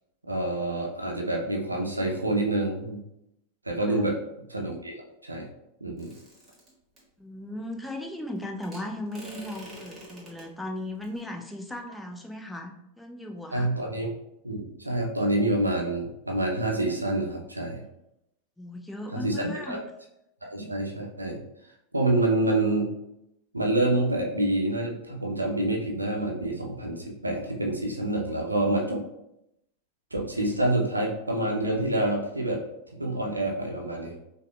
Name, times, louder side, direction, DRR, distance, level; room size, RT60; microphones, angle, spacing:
voice 1, 0.3-3.0 3.7-4.2 4.5-5.0 5.2-5.5 5.8-6.1 13.5-14.1 14.4-17.8 19.1-19.8 20.4-21.4 21.9-22.9 23.5-29.0 30.1-32.6 32.9-34.2, right 1 dB, 80° right, 0 dB, 0.5 m, -27 dB
sound 1, 6.0-7.0 8.6-10.5 11.0-11.2, equal, 20° right, 1.3 m, -45 dB
voice 2, 7.2-13.7 18.6-19.8, left 1 dB, 5° left, 2 dB, 0.4 m, -37 dB
4.9 x 2.1 x 2.2 m, 0.82 s
figure-of-eight pair, 90°, 0 cm